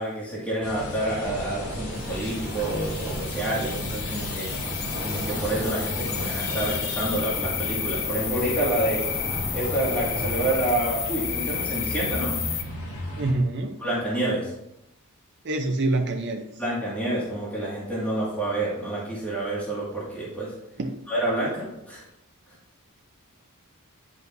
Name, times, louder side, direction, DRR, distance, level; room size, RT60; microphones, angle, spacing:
voice 1, 0.0-4.5 5.0-9.0 9.5-12.4 13.8-14.5 16.6-20.5 21.1-22.0, right 1 dB, 5° left, -7 dB, 2.0 m, -28 dB
sound 1, 0.6-13.3, equal, 75° left, 1.8 m, -35 dB
sound 2, 1.2-10.6, equal, 10° right, 1.8 m, -36 dB
sound 3, 2.0-12.6, left 8 dB, 60° left, 0.7 m, -32 dB
voice 2, 13.2-13.8 15.4-16.4 20.8-21.0, right 2 dB, 50° right, 2 dB, 0.6 m, -26 dB
9.4 x 4.9 x 2.7 m, 0.85 s
head